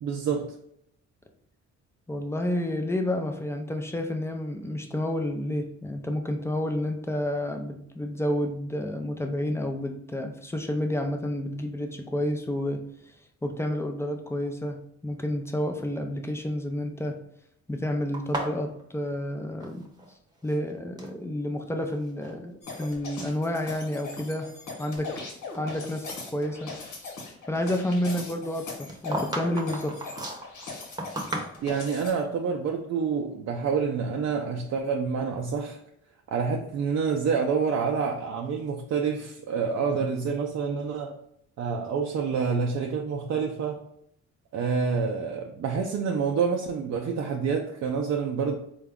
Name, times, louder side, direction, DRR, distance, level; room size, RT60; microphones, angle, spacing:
voice 1, 0.0-0.5 31.6-35.8 36.3-41.2 41.6-43.8 44.5-48.5, right 5 dB, 55° right, 1 dB, 0.5 m, -27 dB
voice 2, 2.1-12.8 13.4-17.2 17.7-19.9 20.4-24.5 24.8-25.1 25.5-26.7 27.0-27.2 27.5-30.0, left 1 dB, 10° left, 5 dB, 0.4 m, -30 dB
sound 1, 18.1-20.1 20.4-21.2 21.8-22.4 22.7-22.9 23.6-23.7 24.2-25.7 26.1-26.2 28.5-31.9, right 1 dB, 15° right, 0.8 m, -36 dB
sound 2, 22.6-32.1, left 3 dB, 80° left, 1.1 m, -40 dB
3.8 x 2.3 x 3.5 m, 0.72 s
cardioid pair, 90°, 30 cm